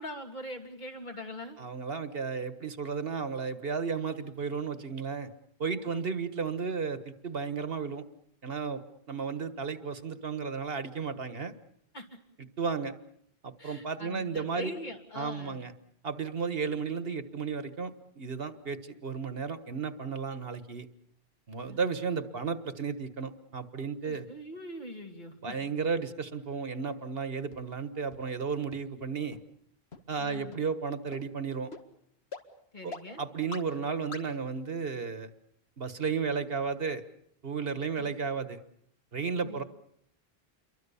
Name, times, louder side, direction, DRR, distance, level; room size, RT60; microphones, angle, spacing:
voice 1, 0.0-1.6 5.7-6.1 11.9-12.2 13.6-15.6 21.6-21.8 24.0-25.6 30.2-30.6 32.7-33.2 38.0-38.1 39.4-39.6, left 1 dB, 45° left, 5 dB, 2.9 m, -42 dB
voice 2, 1.6-5.3 5.6-8.0 8.4-8.8 9.1-11.5 12.6-12.9 13.4-14.7 15.1-15.7 16.0-20.9 21.5-24.3 25.4-29.4 30.1-31.7 32.8-32.9 33.2-35.3 35.8-37.0 37.4-38.6 39.1-39.6, right 5 dB, 70° right, 11 dB, 1.7 m, -33 dB
sound 1, 27.5-27.6 28.1-28.2 28.7-28.8 29.3-29.4 29.9-30.0 30.5-30.6 31.1-31.2 31.7-31.8 32.3-32.4 32.9-33.0 33.5-33.6 34.1-34.2, left 4 dB, 90° left, 2.2 m, -42 dB
28.5 x 23.5 x 7.0 m, 0.71 s
omnidirectional pair, 1.0 m